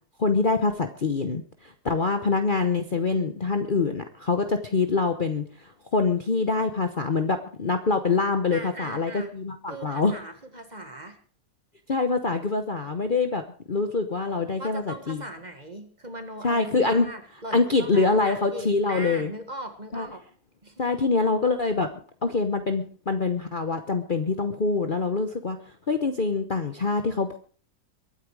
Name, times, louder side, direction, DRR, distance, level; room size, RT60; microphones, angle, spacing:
voice 1, 0.2-10.1 11.9-13.4 13.7-15.2 16.4-17.1 17.5-19.3 19.9-20.1 20.8-21.9 22.2-25.6 25.9-27.4, left 3 dB, 35° left, 7 dB, 1.0 m, -25 dB
voice 2, 8.5-9.3 9.7-11.2 14.6-20.2 20.6-20.8, right 1 dB, 25° right, 7 dB, 1.8 m, -39 dB
22.5 x 9.1 x 4.8 m, 0.43 s
omnidirectional pair, 1.7 m